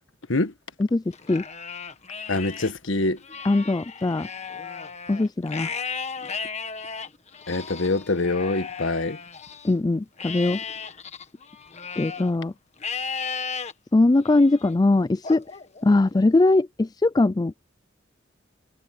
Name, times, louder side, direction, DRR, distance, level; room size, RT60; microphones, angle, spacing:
Livestock farm animals working animals, 1.1-2.7 3.2-9.7 10.2-12.3 12.8-13.7 14.2-14.7 15.2-16.3, left 5 dB, 35° left, 1.4 m, -35 dB
voice 1, 2.3-3.2 7.5-9.2, left 2 dB, 80° left, 1.5 m, -25 dB
voice 2, 3.4-4.3 5.1-5.7 9.6-10.6 12.0-12.5 13.9-15.4 15.8-17.5, left 2 dB, 20° left, 0.4 m, -21 dB
head